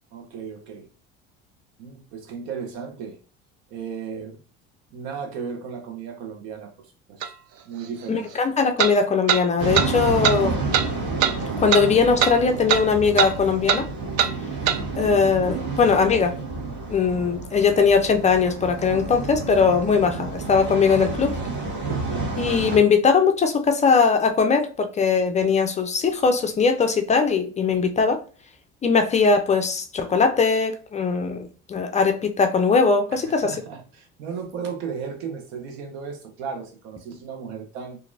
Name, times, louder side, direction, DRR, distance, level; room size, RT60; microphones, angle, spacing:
voice 1, 0.1-0.9 1.8-3.2 3.7-4.4 4.9-7.3 7.6-8.3 33.1-38.0, right 6 dB, 75° right, 0.9 m, -35 dB
sound 1, 7.2-7.3 8.8-8.9 9.3-9.4 9.7-9.9 10.2-10.4 10.7-10.9 11.2-11.3 11.7-11.9 12.2-12.4 12.7-12.8 13.2-13.3 13.7-13.8 14.2-14.3 14.7-14.8, right 9 dB, 50° right, 0.4 m, -21 dB
voice 2, 8.1-10.6 11.6-13.8 15.0-16.3 16.9-21.3 22.4-28.2 28.8-33.5, left 5 dB, 25° left, 0.4 m, -20 dB
sound 2, 9.6-22.8, right 3 dB, 35° right, 1.4 m, -30 dB
2.9 x 2.6 x 2.6 m
supercardioid pair, 100°, 31 cm